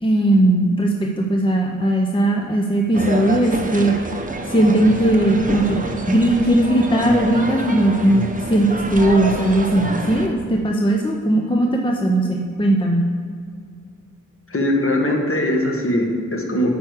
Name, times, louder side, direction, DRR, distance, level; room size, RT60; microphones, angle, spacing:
voice 1, 0.0-3.9 4.5-5.8 6.1-8.2 8.5-13.1, right 1 dB, 15° left, 1 dB, 0.6 m, -18 dB
sound 1, 2.9-10.3, right 2 dB, 25° right, 0.8 m, -28 dB
voice 2, 14.5-16.8, left 1 dB, 45° left, 1 dB, 1.3 m, -20 dB
9.0 x 4.7 x 6.5 m, 2.2 s
wide cardioid pair, 90°, 32 cm